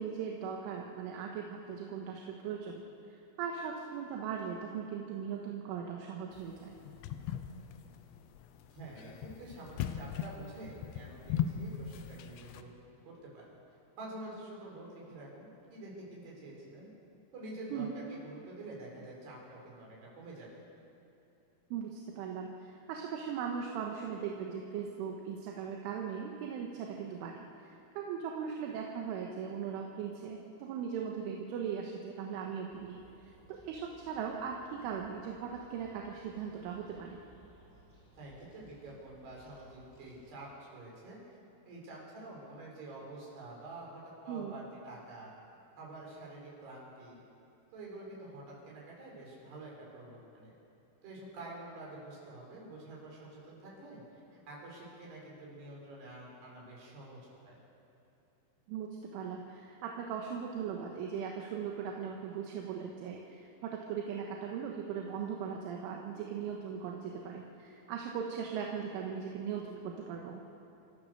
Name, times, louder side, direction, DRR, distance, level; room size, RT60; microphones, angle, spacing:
voice 1, 0.0-2.8 3.4-6.8 17.7-18.0 21.7-33.0 33.2-37.2 44.3-44.6 58.7-70.5, right 7 dB, 75° right, 0 dB, 3.6 m, -39 dB
sound 1, 6.3-12.6, left 9 dB, 80° left, 2.6 m, -38 dB
voice 2, 8.7-12.7 13.0-13.6 14.0-16.9 17.3-20.6 38.2-41.2 41.7-45.3 45.8-47.2 47.7-50.5 51.0-57.6, right 2 dB, 50° right, -3 dB, 7.0 m, -48 dB
sound 2, 32.7-40.3, right 1 dB, 5° left, 4.3 m, -62 dB
29.0 x 14.5 x 6.8 m, 2.8 s
omnidirectional pair, 6.0 m